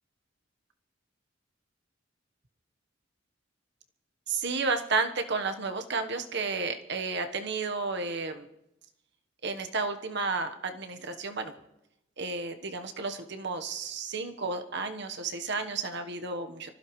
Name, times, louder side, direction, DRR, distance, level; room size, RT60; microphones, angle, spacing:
voice 1, 4.3-8.5 9.4-11.5 12.2-16.7, right 4 dB, 60° right, 6 dB, 1.3 m, -32 dB
25.0 x 15.0 x 3.2 m, 0.88 s
head